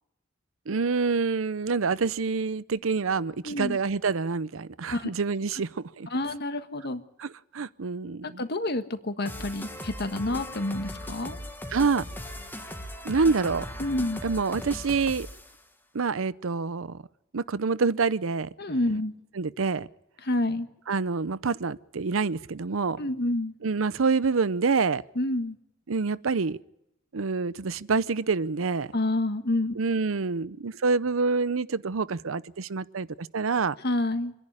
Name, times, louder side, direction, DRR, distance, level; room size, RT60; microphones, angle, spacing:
voice 1, 0.7-6.1 7.2-8.4 11.7-12.1 13.0-13.7 14.2-15.3 15.9-17.0 17.3-18.5 19.4-19.9 20.9-23.0 23.6-25.0 25.9-26.6 27.1-28.9 29.8-33.7, right 4 dB, 85° right, 0.7 m, -27 dB
voice 2, 3.4-3.8 4.9-5.1 6.1-7.0 8.2-11.4 13.8-14.2 18.6-19.1 20.2-20.7 23.0-23.5 25.1-25.6 28.9-29.7 33.8-34.3, left 1 dB, 55° left, 1.5 m, -28 dB
sound 1, 9.3-15.5, left 1 dB, 10° left, 1.5 m, -38 dB
26.0 x 11.0 x 9.9 m
head